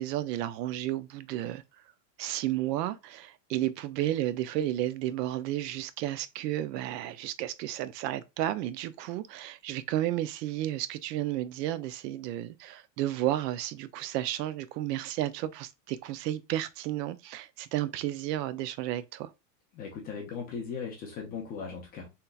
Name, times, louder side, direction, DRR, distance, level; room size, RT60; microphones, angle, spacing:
voice 1, 0.0-1.6 2.2-19.3, right 13 dB, 70° right, 0.6 m, -32 dB
voice 2, 19.7-22.1, left 6 dB, 20° left, 0.3 m, -38 dB
3.5 x 2.8 x 2.3 m
supercardioid pair, 145°, 50 cm